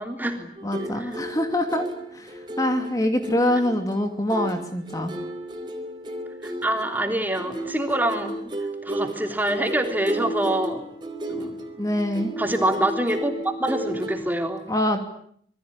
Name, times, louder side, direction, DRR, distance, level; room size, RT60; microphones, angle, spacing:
voice 1, 0.0-0.5 0.9-1.1 6.4-8.4 8.8-10.8 11.3-11.5 12.4-14.6, right 1 dB, 10° right, 5 dB, 3.3 m, -25 dB
voice 2, 0.6-1.9 2.1-5.1 11.8-12.3 14.7-15.0, left 1 dB, 20° left, 6 dB, 2.8 m, -24 dB
sound 1, 0.6-14.1, right 1 dB, 25° right, 4.3 m, -33 dB
27.0 x 22.0 x 9.8 m, 0.64 s
head